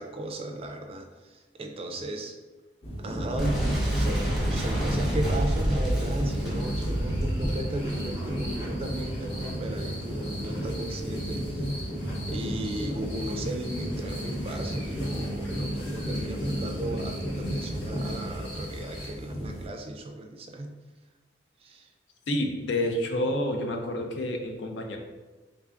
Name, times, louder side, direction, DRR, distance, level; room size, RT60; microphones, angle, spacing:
voice 1, 0.0-2.3 3.0-11.9 12.3-20.8 21.6-21.9, right 1 dB, 35° right, 3 dB, 0.4 m, -36 dB
sound 1, 2.8-19.7, equal, 35° left, 0.9 m, -33 dB
Boom, 3.4-8.9, equal, ahead, 0.7 m, -28 dB
sound 2, 6.3-19.1, equal, 70° left, 1.0 m, -43 dB
voice 2, 22.3-25.0, left 1 dB, 85° left, 3 dB, 0.5 m, -29 dB
3.2 x 2.5 x 3.4 m, 1.2 s
head